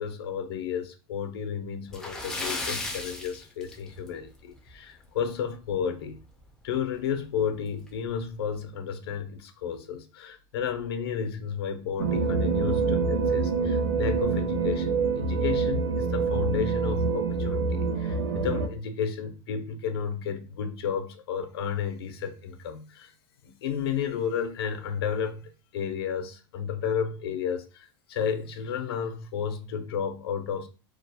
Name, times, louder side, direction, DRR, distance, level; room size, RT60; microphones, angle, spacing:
voice 1, 0.0-6.2 6.6-23.1 23.4-30.7, left 7 dB, 85° left, 0.5 m, -32 dB
Splash splatter, 1.9-4.3 4.6-4.7 5.2-5.3 6.7-6.8 7.1-7.2 7.9-8.1, left 2 dB, 5° left, 0.3 m, -35 dB
sound 1, 12.0-18.7, right 4 dB, 85° right, 0.6 m, -26 dB
2.3 x 2.0 x 2.7 m
supercardioid pair, 155°, 13 cm